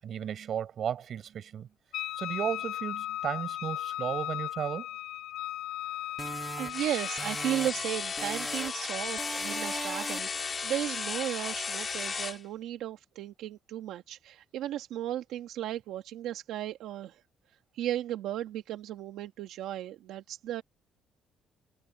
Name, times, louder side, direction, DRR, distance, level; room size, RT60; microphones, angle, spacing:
voice 1, 0.0-1.7 2.2-4.9, right 9 dB, 45° right, 7.2 m, -34 dB
Wind instrument woodwind instrument, 1.9-7.3, left 13 dB, 75° left, 4.2 m, -36 dB
sound 1, 6.2-7.9 8.2-8.9 9.2-10.4, right 3 dB, 15° right, 2.8 m, -39 dB
voice 2, 6.6-17.2 17.7-20.6, right 12 dB, 85° right, 1.7 m, -35 dB
sound 2, 6.7-12.4, left 5 dB, 30° left, 2.6 m, -35 dB
cardioid pair, 155°, 0 cm